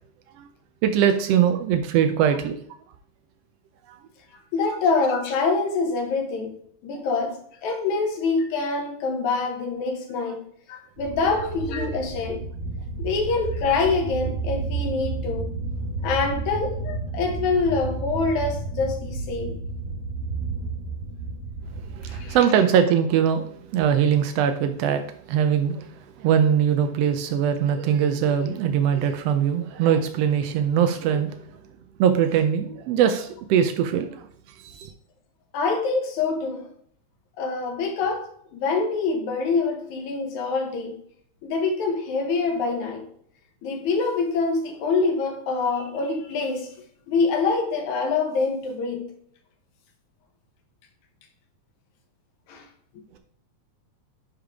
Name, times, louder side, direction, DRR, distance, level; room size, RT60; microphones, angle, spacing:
voice 1, 0.8-2.6 3.9-4.0 11.3-11.5 21.8-25.0 25.3-25.9 26.2-31.5 32.0-34.9, right 8 dB, 85° right, 1.4 m, -22 dB
voice 2, 4.5-6.6 6.8-10.4 10.7-12.5 13.0-15.5 16.0-19.6 22.0-22.4 35.5-36.7 37.4-41.0 41.4-43.0 43.6-46.8 47.1-49.1 52.5-52.6, left 4 dB, 80° left, 2.4 m, -25 dB
sound 1, 11.0-22.4, right 3 dB, 65° right, 2.2 m, -31 dB
10.0 x 3.7 x 3.5 m
omnidirectional pair, 3.4 m